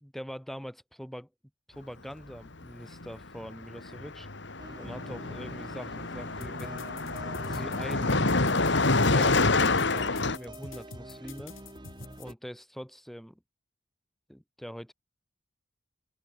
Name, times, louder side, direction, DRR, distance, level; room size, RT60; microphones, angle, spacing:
voice 1, 0.0-1.3 1.7-4.3 4.8-6.9 7.4-8.2 8.9-11.5 12.2-13.4 14.3-14.9, equal, ahead, 2.5 m, -43 dB
Car passing by, 2.9-3.1 3.4-10.4, left 3 dB, 60° left, 2.1 m, -27 dB
sound 1, 4.6-12.3, right 1 dB, 20° right, 2.2 m, -47 dB
sound 2, 6.4-12.3, left 3 dB, 80° left, 2.9 m, -46 dB
head